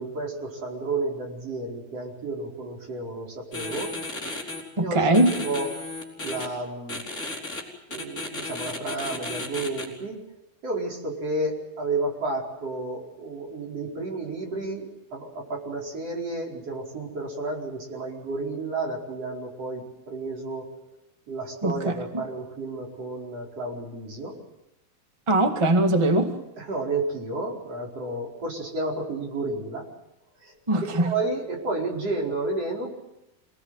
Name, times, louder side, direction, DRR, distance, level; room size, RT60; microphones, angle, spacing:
voice 1, 0.0-3.9 4.8-5.1 5.4-5.7 6.2-7.1 7.9-10.2 10.6-20.6 21.3-24.4 26.6-29.9 30.4-30.5 30.8-32.9, right 2 dB, 40° right, -1 dB, 5.7 m, -31 dB
sound 1, 3.5-4.6 5.1-6.5 6.9-7.6 7.9-9.9, left 2 dB, 20° left, 4.8 m, -34 dB
voice 2, 4.8-5.4 21.6-21.9 25.3-26.3 30.7-31.1, right 1 dB, 20° right, 4 dB, 0.8 m, -21 dB
27.0 x 19.5 x 7.9 m, 0.95 s
omnidirectional pair, 4.3 m